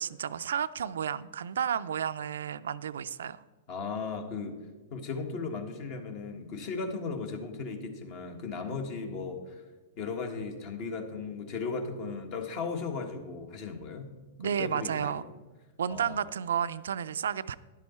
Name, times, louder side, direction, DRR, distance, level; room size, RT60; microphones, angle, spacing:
voice 1, 0.0-3.4 14.4-15.2 15.8-17.6, right 8 dB, 75° right, 14 dB, 0.3 m, -32 dB
voice 2, 3.7-4.5 4.9-9.6 10.0-14.1 14.4-15.4 15.9-16.3, left 4 dB, 50° left, 6 dB, 1.4 m, -36 dB
10.5 x 7.3 x 4.3 m, 1.3 s
hypercardioid pair, 115°, 0 cm